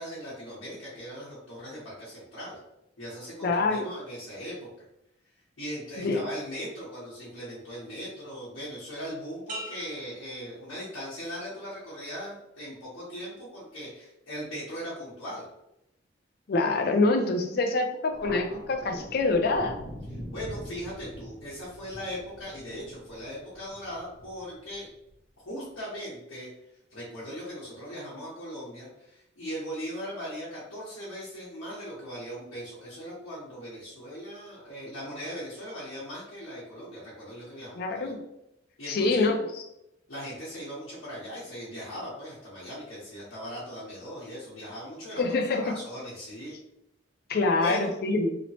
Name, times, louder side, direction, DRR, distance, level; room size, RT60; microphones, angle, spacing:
voice 1, 0.0-2.6 3.0-4.8 5.6-15.4 20.3-24.9 25.4-26.5 26.9-38.1 38.8-39.3 40.1-46.5 47.6-47.9, equal, 85° left, -10 dB, 0.9 m, -39 dB
voice 2, 3.4-3.9 6.0-6.2 16.5-19.8 37.8-38.2 38.9-39.6 45.2-45.7 47.3-48.4, left 3 dB, 50° left, 4 dB, 0.4 m, -25 dB
sound 1, 9.5-11.3 11.8-12.2, right 1 dB, 40° right, 0.5 m, -44 dB
Thunder, 18.1-25.1, equal, 85° right, 1.3 m, -43 dB
3.0 x 2.0 x 2.7 m, 0.84 s
head